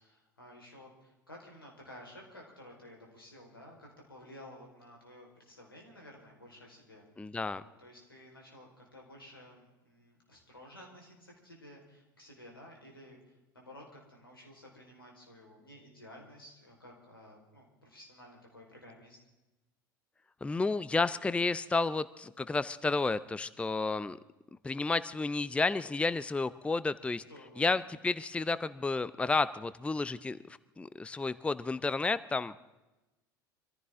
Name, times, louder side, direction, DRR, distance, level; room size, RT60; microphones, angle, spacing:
voice 1, 0.0-19.2 27.3-27.8, left 1 dB, 90° left, -1 dB, 4.4 m, -53 dB
voice 2, 7.2-7.6 20.4-24.2 24.6-27.2 27.6-32.6, left 3 dB, 10° left, 16 dB, 0.6 m, -31 dB
24.5 x 15.0 x 3.7 m, 1.0 s
figure-of-eight pair, 75°, 12 cm